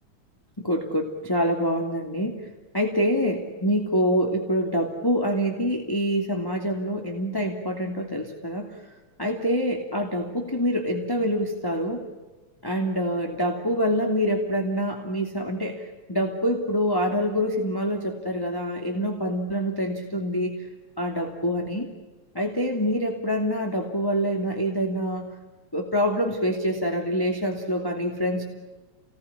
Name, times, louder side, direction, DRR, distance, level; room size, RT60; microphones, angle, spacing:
voice 1, 0.6-2.5 2.7-8.7 9.2-12.0 12.6-20.5 21.0-21.9 22.3-25.3 25.7-28.4, equal, 10° left, 1 dB, 2.4 m, -26 dB
29.5 x 20.0 x 9.9 m, 1.2 s
omnidirectional pair, 3.3 m